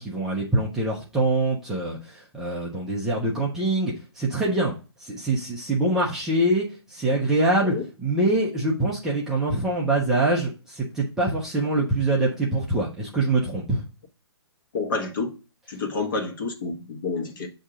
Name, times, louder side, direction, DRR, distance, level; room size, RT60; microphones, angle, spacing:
voice 1, 0.0-4.7 5.0-13.8, right 2 dB, 5° right, 0.4 m, -24 dB
voice 2, 14.7-15.3 15.7-17.5, left 4 dB, 50° left, 1.2 m, -29 dB
7.5 x 2.7 x 4.8 m
hypercardioid pair, 165°, 14 cm